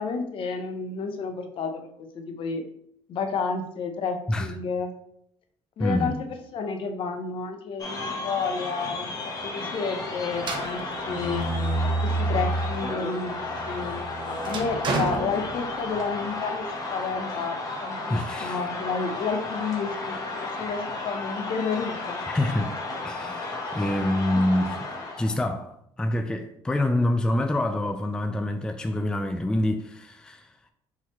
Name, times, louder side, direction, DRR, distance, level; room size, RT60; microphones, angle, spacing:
voice 1, 0.0-1.9 2.1-2.6 3.1-4.9 5.8-9.1 9.4-11.5 12.0-14.0 14.3-22.3 24.3-24.4, left 5 dB, 55° left, 0.8 m, -31 dB
voice 2, 5.8-6.1 18.1-18.6 22.3-22.7 23.0-24.8 25.2-30.7, left 1 dB, 5° left, 0.3 m, -26 dB
sound 1, 7.8-25.4, left 3 dB, 35° left, 1.1 m, -33 dB
sound 2, 10.4-12.8 13.2-16.1, right 2 dB, 45° right, 0.9 m, -29 dB
4.3 x 3.9 x 3.0 m
cardioid pair, 110°, 11 cm